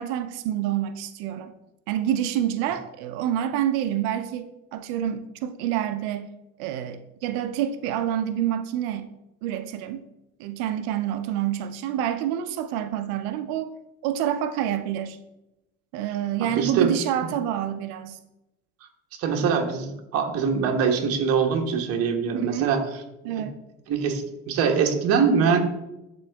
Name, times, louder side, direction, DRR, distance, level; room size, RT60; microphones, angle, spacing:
voice 1, 0.0-1.6 1.9-6.3 6.6-9.1 9.4-10.0 10.4-13.7 14.0-15.2 15.9-18.2 22.3-22.7 23.2-23.6, right 10 dB, 85° right, 10 dB, 0.6 m, -27 dB
voice 2, 16.4-16.9 19.2-22.8 23.9-25.6, right 6 dB, 50° right, 3 dB, 1.2 m, -23 dB
10.5 x 3.9 x 3.4 m, 0.93 s
cardioid pair, 145°, 31 cm